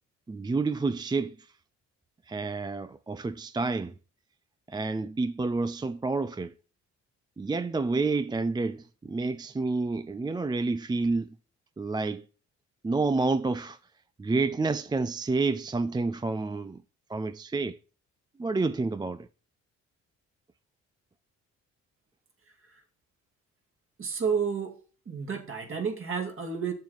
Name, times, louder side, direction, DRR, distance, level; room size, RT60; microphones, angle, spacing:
voice 1, 0.3-1.3 2.3-3.9 4.7-6.5 7.4-11.3 11.8-12.2 12.8-13.8 14.2-16.8 17.1-17.8 18.4-19.3, right 3 dB, 15° right, 0.4 m, -29 dB
voice 2, 24.0-24.8 25.1-26.7, right 6 dB, 45° right, 2.7 m, -30 dB
7.5 x 7.3 x 5.6 m
cardioid pair, 90°, 30 cm